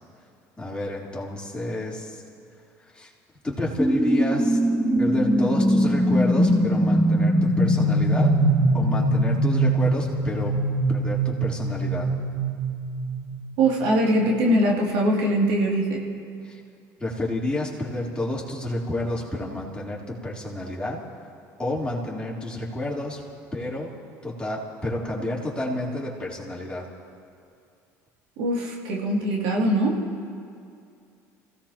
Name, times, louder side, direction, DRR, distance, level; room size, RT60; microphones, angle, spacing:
voice 1, 0.6-2.2 2.9-3.1 3.4-4.6 5.0-8.3 8.7-10.6 10.9-12.1 16.5-16.6 17.0-21.0 21.6-23.2 23.5-24.0 24.2-26.9, left 1 dB, 10° left, -5 dB, 3.6 m, -30 dB
sound 1, 3.8-14.1, right 1 dB, 10° right, 2.6 m, -22 dB
voice 2, 13.6-16.1 28.4-30.0, right 1 dB, 70° right, -2 dB, 2.8 m, -22 dB
26.5 x 17.0 x 3.0 m, 2.4 s
hypercardioid pair, 75°, 9 cm